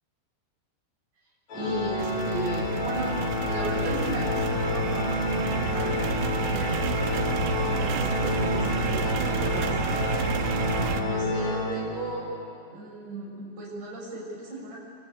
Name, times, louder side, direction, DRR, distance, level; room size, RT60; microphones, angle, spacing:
Organ, 1.5-12.3, left 3 dB, 40° left, 4.1 m, -29 dB
voice 1, 1.5-3.1 3.4-6.0 6.3-6.8 7.6-10.2 10.9-12.3 12.7-14.8, right 1 dB, 45° right, -3 dB, 7.8 m, -36 dB
sound 1, 2.0-11.0, right 6 dB, 75° right, 3.4 m, -30 dB
27.5 x 25.0 x 8.6 m, 2.3 s
omnidirectional pair, 5.2 m